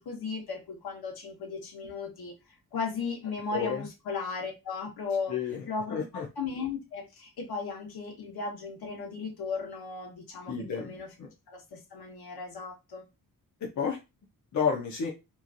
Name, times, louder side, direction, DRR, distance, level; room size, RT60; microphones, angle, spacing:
voice 1, 0.0-2.3 2.7-5.4 5.6-6.0 6.4-11.1 11.5-13.0, left 4 dB, 75° left, 1.2 m, -36 dB
voice 2, 3.5-3.9 5.3-6.3 10.5-10.9 11.2-11.3 13.6-14.0 14.5-15.1, left 6 dB, 50° left, 0.6 m, -31 dB
3.0 x 2.4 x 2.5 m
wide cardioid pair, 160°, 37 cm